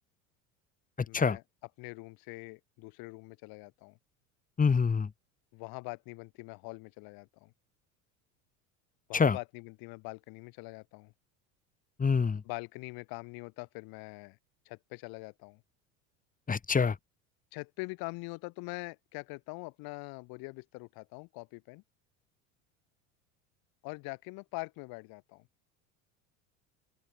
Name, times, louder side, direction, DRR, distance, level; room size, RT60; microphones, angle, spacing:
voice 1, 1.1-1.4 1.8-4.0 5.5-7.5 9.1-11.1 12.4-14.4 14.6-15.6 17.5-21.8 23.8-25.5, left 27 dB, 65° left, 6.5 m, -43 dB
voice 2, 4.6-5.1 9.1-9.4 12.0-12.4 16.5-17.0, left 5 dB, 20° left, 1.9 m, -25 dB
open air
hypercardioid pair, 85°, 39 cm